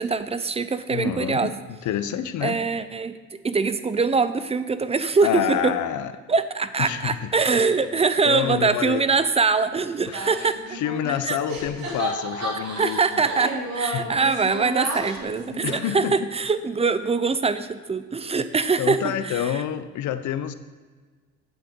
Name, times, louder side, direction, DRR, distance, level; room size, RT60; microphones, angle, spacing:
voice 1, 0.0-1.5 2.4-3.2 3.4-5.8 6.3-10.8 11.2-11.4 12.6-19.6, right 4 dB, 20° right, 12 dB, 0.5 m, -23 dB
voice 2, 0.9-2.6 5.2-6.1 6.8-7.3 8.3-9.1 10.1-13.2 13.9-14.2 15.6-16.3 18.8-20.5, left 10 dB, 75° left, 12 dB, 0.7 m, -28 dB
sound 1, 10.1-11.2 11.5-16.2, right 2 dB, 65° right, 2.8 m, -32 dB
9.4 x 7.7 x 3.7 m, 1.4 s
cardioid pair, 90°, 30 cm